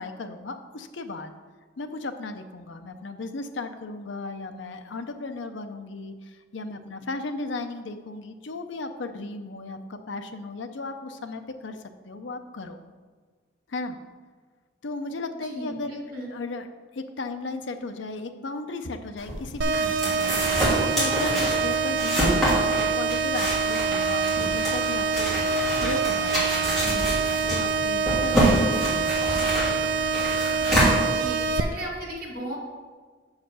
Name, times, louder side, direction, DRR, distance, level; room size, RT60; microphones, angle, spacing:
voice 1, 0.0-1.3 1.8-12.8 13.7-14.0 14.8-16.0 16.3-16.7 16.9-20.4 20.7-29.3, left 3 dB, 75° left, 7 dB, 0.6 m, -35 dB
voice 2, 15.4-16.3 31.1-32.6, right 1 dB, 45° right, -5 dB, 2.0 m, -35 dB
sound 1, 19.2-31.7, equal, ahead, 2.4 m, -27 dB
sound 2, 19.6-31.6, right 5 dB, 65° right, 0.4 m, -25 dB
6.6 x 4.8 x 6.2 m, 1.5 s
head